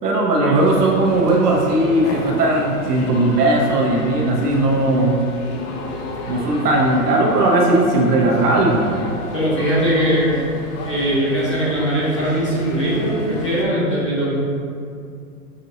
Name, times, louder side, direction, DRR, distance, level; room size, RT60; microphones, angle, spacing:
voice 1, 0.0-5.2 6.3-8.9, right 2 dB, 85° right, -1 dB, 1.0 m, -17 dB
sound 1, 0.5-13.6, left 2 dB, 80° left, 0.9 m, -32 dB
voice 2, 9.3-10.4 10.8-14.3, equal, 25° left, -8 dB, 0.3 m, -20 dB
6.2 x 2.8 x 2.8 m, 2.4 s
hypercardioid pair, 145°, 46 cm